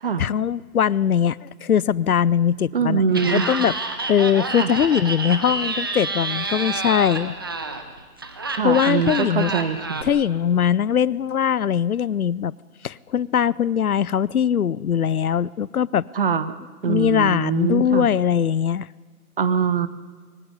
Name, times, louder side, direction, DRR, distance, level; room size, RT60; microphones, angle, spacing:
voice 1, 0.2-3.7 4.1-7.4 8.6-9.5 10.0-12.5 12.8-16.1 16.8-18.9, left 8 dB, 70° left, 23 dB, 0.7 m, -21 dB
voice 2, 2.7-3.5 4.6-4.7 8.6-10.0 16.1-16.5 16.8-18.1 19.4-19.9, right 6 dB, 35° right, 13 dB, 1.2 m, -23 dB
Laughter, 3.1-10.0, right 3 dB, 15° right, 0.7 m, -28 dB
23.0 x 17.0 x 9.9 m, 1.4 s
figure-of-eight pair, 155°, 46 cm